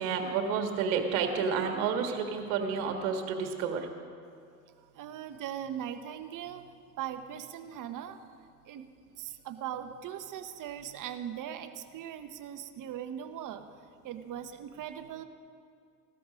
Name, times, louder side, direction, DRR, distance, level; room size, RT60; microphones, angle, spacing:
voice 1, 0.0-3.8, right 6 dB, 70° right, 5 dB, 1.7 m, -30 dB
voice 2, 4.9-8.2 8.7-8.9 9.2-15.2, right 10 dB, 45° right, 9 dB, 1.1 m, -40 dB
16.0 x 13.0 x 5.1 m, 2.3 s
hypercardioid pair, 70°, 43 cm